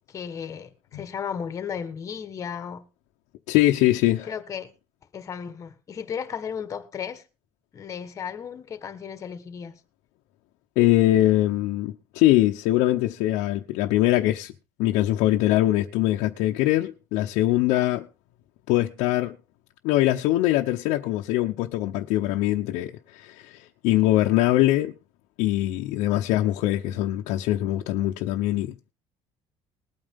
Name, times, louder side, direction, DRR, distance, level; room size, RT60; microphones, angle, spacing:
voice 1, 0.1-2.9 4.3-4.7 5.1-7.2 7.7-9.8, left 7 dB, 25° left, 1.4 m, -34 dB
voice 2, 3.5-4.3 10.8-14.5 14.8-18.1 18.7-19.4 19.8-24.9 25.4-28.7, left 15 dB, 90° left, 1.0 m, -22 dB
20.0 x 9.0 x 3.7 m
cardioid pair, 180°, 12 cm